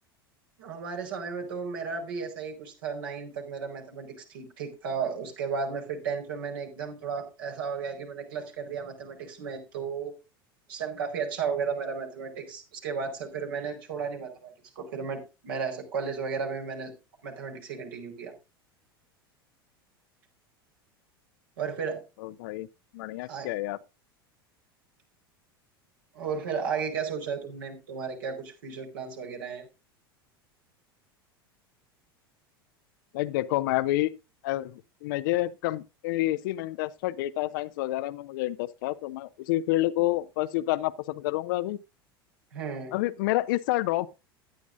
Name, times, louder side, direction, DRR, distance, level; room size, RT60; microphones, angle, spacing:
voice 1, 0.6-10.2 10.7-16.9 17.2-18.3 21.6-22.0 23.3-23.5 26.1-29.6 42.5-43.0, right 6 dB, 65° right, 4.6 m, -34 dB
voice 2, 22.2-22.7 22.9-23.8 33.1-34.2 34.4-41.8 42.9-44.1, left 16 dB, 60° left, 0.7 m, -28 dB
15.5 x 10.5 x 2.6 m
figure-of-eight pair, 80°, 13 cm